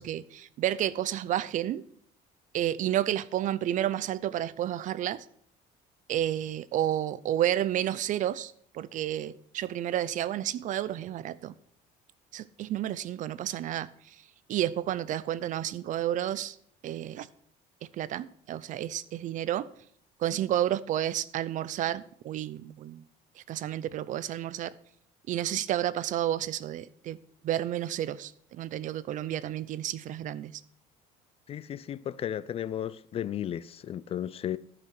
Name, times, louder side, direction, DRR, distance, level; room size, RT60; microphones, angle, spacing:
voice 1, 0.0-1.8 2.5-5.3 6.1-11.5 12.3-14.2 14.5-16.6 16.8-17.3 18.0-19.7 20.2-23.0 23.4-24.7 25.3-27.2 27.4-30.5, right 12 dB, 50° right, 0.5 m, -31 dB
voice 2, 31.5-34.6, left 10 dB, 35° left, 0.4 m, -34 dB
13.0 x 5.9 x 6.1 m
cardioid pair, 135°, 16 cm